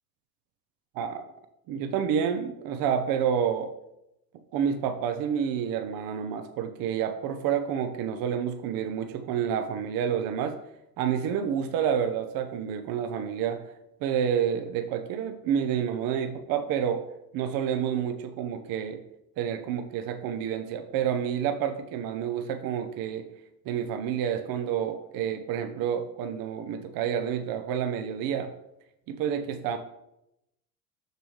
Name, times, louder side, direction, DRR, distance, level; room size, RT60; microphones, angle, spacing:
voice 1, 1.7-3.7 4.5-10.6 11.0-13.6 14.0-17.0 17.3-19.0 19.4-23.3 23.7-28.5 29.1-29.8, right 8 dB, 45° right, 9 dB, 0.7 m, -29 dB
6.7 x 6.2 x 3.1 m, 0.83 s
hypercardioid pair, 65°, 48 cm